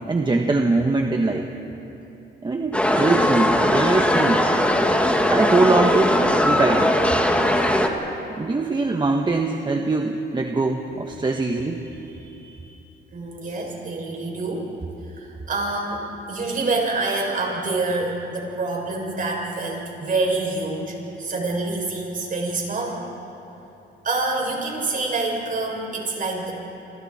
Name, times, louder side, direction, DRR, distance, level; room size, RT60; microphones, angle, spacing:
voice 1, 0.1-1.5 2.4-4.5 5.3-6.2 6.4-7.0 8.4-12.8, right 3 dB, 25° right, 2 dB, 1.4 m, -22 dB
sound 1, 2.7-7.9, left 1 dB, 5° left, 2.1 m, -19 dB
voice 2, 13.1-14.7 15.0-23.0 24.0-26.5, right 3 dB, 45° right, -1 dB, 6.9 m, -26 dB
29.5 x 25.0 x 4.4 m, 2.9 s
cardioid pair, 90°, 20 cm